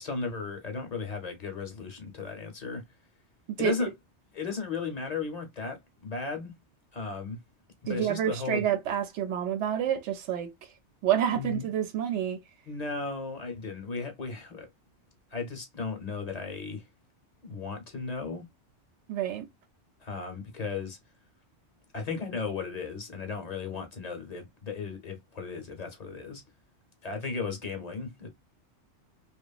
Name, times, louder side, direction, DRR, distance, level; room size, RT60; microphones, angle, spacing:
voice 1, 0.0-2.8 3.6-3.9 4.3-6.6 6.9-7.4 7.8-8.7 11.3-11.7 12.7-14.7 15.3-16.8 17.4-18.5 20.0-21.0 21.9-26.4 27.0-28.3, left 4 dB, 45° left, 0.7 m, -35 dB
voice 2, 7.9-10.5 11.0-12.4 19.1-19.5, right 10 dB, 90° right, 0.9 m, -28 dB
2.9 x 2.2 x 2.3 m
omnidirectional pair, 1.2 m